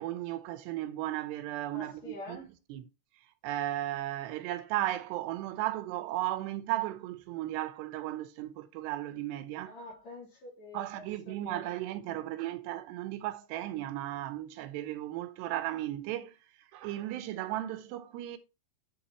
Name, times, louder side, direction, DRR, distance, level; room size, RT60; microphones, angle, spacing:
voice 1, 0.0-2.4 2.7-2.9 3.4-9.7 10.7-16.4 16.7-18.4, right 14 dB, 85° right, 3.0 m, -35 dB
voice 2, 1.7-2.5 9.7-11.7, left 2 dB, 45° left, 4.1 m, -46 dB
8.3 x 7.2 x 3.0 m
omnidirectional pair, 4.7 m